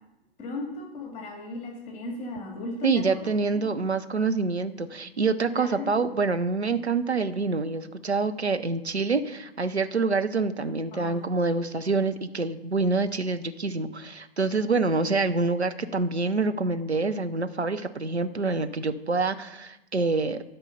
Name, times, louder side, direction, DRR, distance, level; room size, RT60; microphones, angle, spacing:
voice 1, 0.4-3.3 5.4-5.9 10.9-11.1, left 2 dB, 20° left, 0 dB, 2.2 m, -36 dB
voice 2, 2.8-20.4, right 3 dB, 90° right, 10 dB, 0.7 m, -26 dB
11.5 x 4.5 x 6.7 m, 0.91 s
figure-of-eight pair, 115°, 32 cm